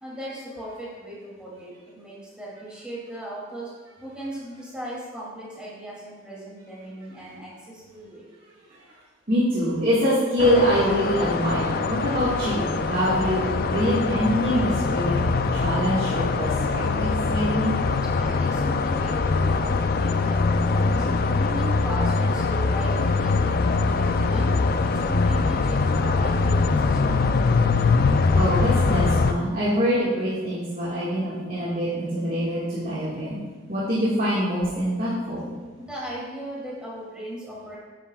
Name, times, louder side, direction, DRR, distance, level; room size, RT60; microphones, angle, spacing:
voice 1, 0.0-3.7 4.0-8.2 18.2-20.9 21.4-23.5 24.0-24.5 24.8-27.5 35.9-37.8, right 1 dB, 5° right, -7 dB, 2.7 m, -37 dB
voice 2, 9.3-15.2 15.5-17.7 28.3-33.4 33.7-35.5, equal, 45° right, -10 dB, 1.8 m, -24 dB
sound 1, 10.4-29.3, left 4 dB, 45° left, 0.4 m, -23 dB
9.9 x 9.0 x 2.4 m, 1.4 s
head